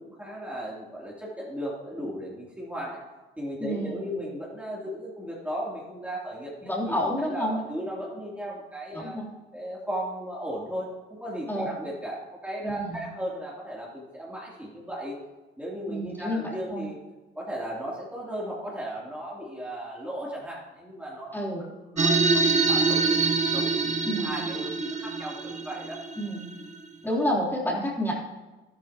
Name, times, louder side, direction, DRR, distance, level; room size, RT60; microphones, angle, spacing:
voice 1, 0.0-3.0 3.4-9.2 9.5-15.2 15.6-17.0 17.3-23.2 23.5-26.0, equal, 5° right, -6 dB, 3.1 m, -36 dB
voice 2, 3.6-4.2 6.6-7.6 8.9-9.2 11.5-11.7 12.6-13.1 15.9-16.8 21.3-21.7 24.0-24.4 26.2-26.5 27.0-28.1, equal, 10° left, -4 dB, 3.5 m, -29 dB
sound 1, 22.0-26.8, right 4 dB, 40° right, 1.1 m, -25 dB
12.5 x 12.5 x 3.0 m, 1.1 s
cardioid pair, 90°, 20 cm